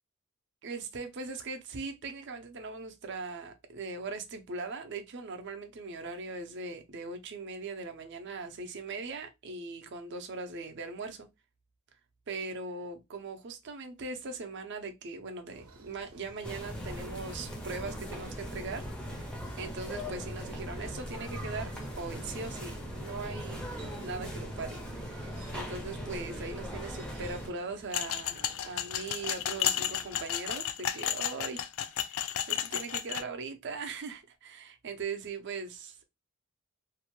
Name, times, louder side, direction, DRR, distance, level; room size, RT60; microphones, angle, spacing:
voice 1, 0.6-11.3 12.3-21.7 22.0-23.6 24.0-32.2 32.5-36.0, right 3 dB, 50° right, 0.5 m, -40 dB
sound 1, 15.5-30.3, right 3 dB, 90° right, 0.7 m, -54 dB
sound 2, 16.4-27.5, equal, 5° left, 0.4 m, -39 dB
sound 3, 27.9-33.2, left 10 dB, 65° left, 0.3 m, -33 dB
2.6 x 2.1 x 2.9 m
head